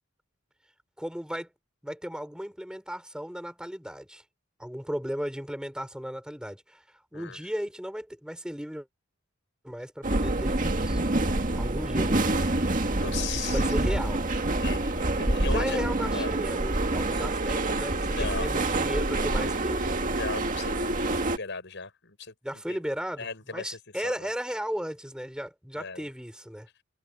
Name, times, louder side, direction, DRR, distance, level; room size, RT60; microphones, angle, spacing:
voice 1, 1.0-1.5 1.8-4.2 4.6-6.8 7.1-8.9 9.6-11.0 11.6-12.5 13.3-14.3 15.4-20.0 22.4-26.7, equal, 5° right, 4.7 m, -35 dB
sound 1, 10.0-21.4, right 2 dB, 40° right, 1.9 m, -27 dB
voice 2, 12.2-13.6 14.6-15.8 16.1-16.3 17.2-17.3 18.1-18.5 20.1-22.3 22.7-22.8 23.2-24.3 25.8-26.1, left 4 dB, 60° left, 6.7 m, -37 dB
head